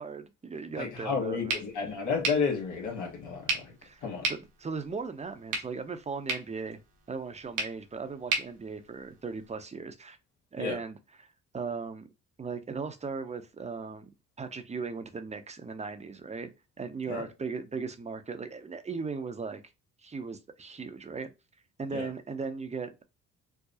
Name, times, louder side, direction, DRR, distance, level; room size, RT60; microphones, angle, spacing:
voice 1, 0.0-1.6 3.8-6.8 7.1-10.2 10.5-12.1 12.4-14.1 14.4-16.5 16.8-19.6 20.0-21.3 21.8-23.0, right 4 dB, 20° right, 0.6 m, -38 dB
voice 2, 0.8-3.7 4.0-4.3 10.6-10.8 17.1-17.3 21.9-22.1, left 5 dB, 85° left, 1.5 m, -31 dB
sound 1, 1.5-9.5, right 3 dB, 85° right, 1.2 m, -37 dB
4.6 x 2.0 x 2.7 m
cardioid pair, 90°, 30 cm